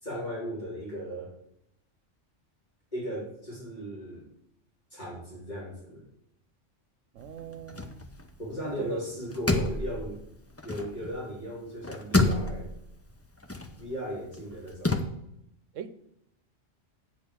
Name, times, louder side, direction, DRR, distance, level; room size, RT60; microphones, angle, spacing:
voice 1, 0.0-1.3 2.9-4.3 4.9-6.1 8.4-10.2 10.6-12.7 13.8-15.0, equal, 35° left, 3.8 m, -36 dB
voice 2, 7.1-8.0 8.8-9.0 15.7-15.9, right 8 dB, 85° right, 1.1 m, -39 dB
sound 1, 7.2-8.8 9.1-11.4 11.7-15.0, left 2 dB, 15° left, 0.5 m, -30 dB
8.6 x 5.0 x 6.8 m
omnidirectional pair, 1.3 m